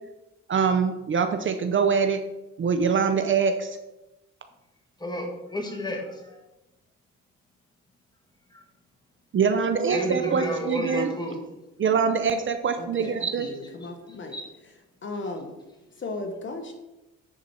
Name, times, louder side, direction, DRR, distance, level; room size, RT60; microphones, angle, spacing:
voice 1, 0.5-2.2 2.6-3.8 9.3-11.1 11.8-13.5, right 6 dB, 40° right, 8 dB, 0.6 m, -24 dB
voice 2, 5.0-6.5 8.5-8.7 9.9-11.4 13.0-13.5 13.8-14.5 15.1-15.2 15.8-16.0, left 1 dB, 15° left, 0 dB, 2.2 m, -33 dB
voice 3, 12.8-14.3 15.0-15.5 16.0-16.7, left 2 dB, 40° left, 4 dB, 1.2 m, -36 dB
10.0 x 4.5 x 4.4 m, 1.0 s
cardioid pair, 90°, 30 cm